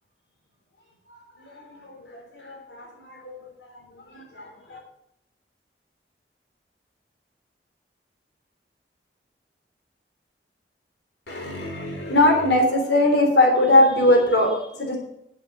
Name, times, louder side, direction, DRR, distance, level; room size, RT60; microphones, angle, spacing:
voice 1, 1.5-4.8 11.3-15.0, left 1 dB, 85° left, 2 dB, 3.4 m, -21 dB
9.1 x 7.7 x 6.6 m, 0.79 s
head